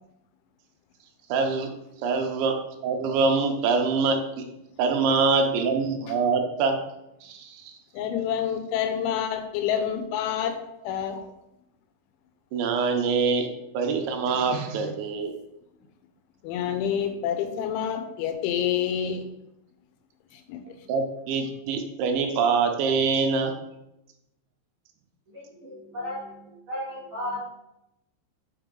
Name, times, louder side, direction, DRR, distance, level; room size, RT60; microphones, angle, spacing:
voice 1, 1.3-1.7 2.0-2.6 2.8-4.4 4.8-6.8 7.2-7.7 12.5-13.5 13.7-15.3 20.9-23.5, right 4 dB, 80° right, 4 dB, 3.0 m, -24 dB
voice 2, 7.9-11.3 16.4-19.3 20.3-20.8, left 9 dB, 85° left, 7 dB, 3.1 m, -28 dB
voice 3, 25.3-27.4, left 1 dB, 55° right, -9 dB, 1.5 m, -35 dB
6.6 x 5.4 x 3.7 m, 0.86 s
omnidirectional pair, 5.3 m